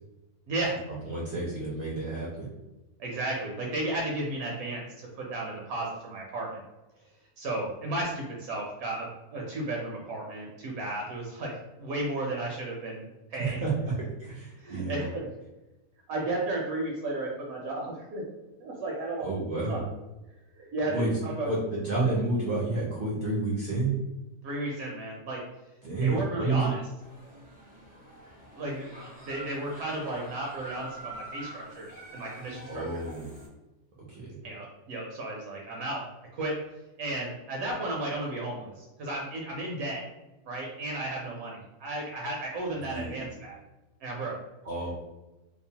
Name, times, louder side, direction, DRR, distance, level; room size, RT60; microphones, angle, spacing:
voice 1, 0.5-0.8 3.0-6.6 7.4-11.5 11.8-13.6 14.6-15.3 16.1-18.2 18.6-19.3 19.7-19.8 20.5-21.5 24.4-25.4 26.0-26.8 28.5-33.0 34.4-36.0 36.3-36.6 37.0-40.0 40.4-43.6 44.0-44.4, right 2 dB, 75° right, -2 dB, 1.0 m, -34 dB
voice 2, 1.0-2.5 13.4-13.9 14.2-15.1 19.2-19.8 20.9-21.2 21.5-23.9 25.8-26.7 32.7-33.4 34.1-34.4 42.9-43.2 44.6-44.9, right 3 dB, 60° right, -6 dB, 0.6 m, -30 dB
sound 1, 27.0-33.5, right 1 dB, 10° right, 0.4 m, -46 dB
2.8 x 2.0 x 2.7 m, 1.0 s
omnidirectional pair, 1.6 m